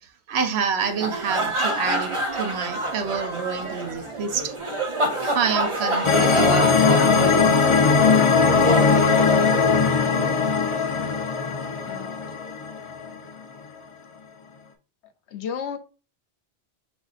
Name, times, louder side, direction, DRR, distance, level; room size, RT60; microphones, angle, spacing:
voice 1, 0.3-4.5 5.2-7.6, right 5 dB, 75° right, 0.9 m, -28 dB
sound 1, 0.8-9.9, right 1 dB, 35° right, 0.6 m, -28 dB
sound 2, 6.0-13.1, left 5 dB, 45° left, 0.4 m, -19 dB
voice 2, 11.9-12.3 15.3-15.8, left 7 dB, 80° left, 1.0 m, -32 dB
6.0 x 2.5 x 2.4 m
omnidirectional pair, 1.1 m